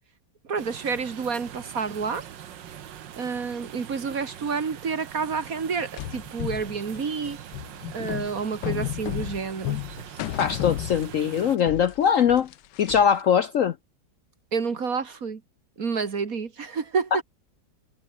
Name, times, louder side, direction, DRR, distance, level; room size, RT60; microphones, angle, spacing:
voice 1, 0.4-2.3 3.2-7.4 7.9-9.8 14.5-15.4 15.8-17.2, right 5 dB, 50° right, 2.2 m, -29 dB
sound 1, 0.6-11.6, right 10 dB, 85° right, 1.9 m, -43 dB
sound 2, 6.0-11.4 11.7-13.2, left 15 dB, 75° left, 1.2 m, -33 dB
voice 2, 10.4-12.5 12.8-13.7, left 8 dB, 60° left, 0.9 m, -21 dB
omnidirectional pair, 1.9 m